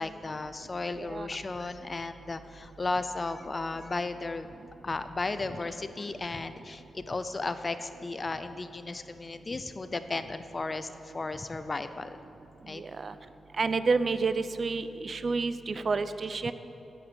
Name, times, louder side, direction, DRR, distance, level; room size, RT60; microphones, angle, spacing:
voice 1, 0.0-4.5 4.8-12.2 12.7-12.8 16.4-16.5, left 3 dB, 20° left, 11 dB, 0.5 m, -35 dB
voice 2, 12.7-13.1 13.6-16.5, right 4 dB, 35° right, 12 dB, 0.5 m, -29 dB
14.0 x 8.8 x 9.6 m, 2.9 s
wide cardioid pair, 180°, 0 cm